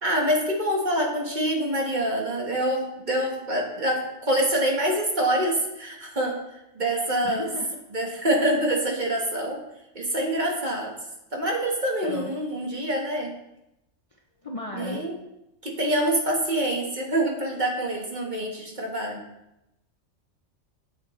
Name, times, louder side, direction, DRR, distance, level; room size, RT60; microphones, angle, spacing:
voice 1, 0.0-7.5 7.9-9.6 10.0-10.9 11.3-13.3 14.7-15.1 15.6-19.2, right 1 dB, 40° right, 0 dB, 1.6 m, -26 dB
voice 2, 7.2-7.8 12.0-12.3 14.4-15.0, left 2 dB, 35° left, 1 dB, 0.6 m, -35 dB
8.5 x 8.2 x 3.2 m, 0.89 s
omnidirectional pair, 1.3 m